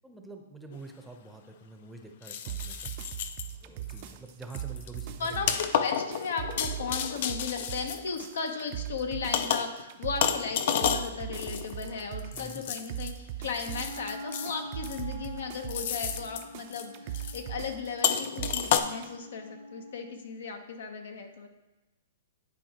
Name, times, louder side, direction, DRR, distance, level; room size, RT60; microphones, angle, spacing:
voice 1, 0.0-2.9 3.6-5.6 12.3-12.7, right 3 dB, 5° right, 4 dB, 0.7 m, -46 dB
sound 1, 0.7-0.8 2.2-3.5 3.9-4.1 4.5-8.6 9.3-9.8 10.2-13.1 13.5-14.5 14.8-15.3 15.7-16.4 16.7-16.9 17.1-17.4 18.0-18.8, left 8 dB, 60° left, 0.5 m, -31 dB
sound 2, 2.5-19.1, right 12 dB, 45° right, 0.5 m, -40 dB
voice 2, 5.2-21.5, left 5 dB, 80° left, 5 dB, 1.0 m, -36 dB
Wind instrument woodwind instrument, 13.6-20.3, equal, 85° right, 0.9 m, -46 dB
10.5 x 4.6 x 2.9 m, 1.1 s
hypercardioid pair, 135°, 0 cm